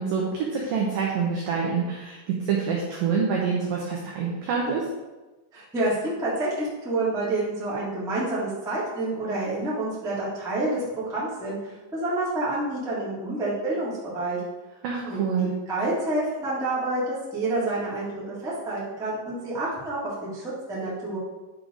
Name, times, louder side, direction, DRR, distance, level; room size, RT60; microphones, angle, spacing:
voice 1, 0.0-4.8 14.8-15.5, right 6 dB, 90° right, -2 dB, 1.9 m, -26 dB
voice 2, 5.5-14.4 15.0-21.2, right 2 dB, 5° right, -8 dB, 0.6 m, -28 dB
10.5 x 4.8 x 3.9 m, 1.2 s
omnidirectional pair, 5.3 m